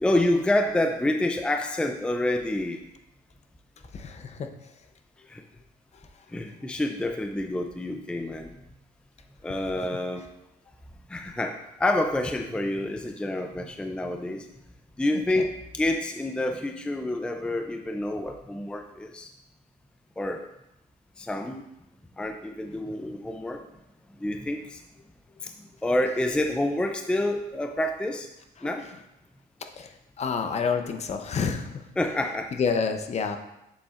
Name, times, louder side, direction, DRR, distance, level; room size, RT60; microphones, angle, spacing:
voice 1, 0.0-2.8 5.3-5.4 6.3-8.6 9.4-10.3 11.1-14.5 15.0-19.3 20.2-20.5 21.2-21.7 22.2-23.6 24.2-24.8 25.4-25.5 25.8-28.3 28.6-28.8 32.0-32.5, left 1 dB, 5° left, 4 dB, 0.4 m, -28 dB
voice 2, 3.9-4.5 15.3-15.4 28.6-28.7 29.6-31.9 32.5-33.4, left 5 dB, 40° left, 7 dB, 0.7 m, -29 dB
7.2 x 7.0 x 2.5 m, 0.87 s
cardioid pair, 110°, 17 cm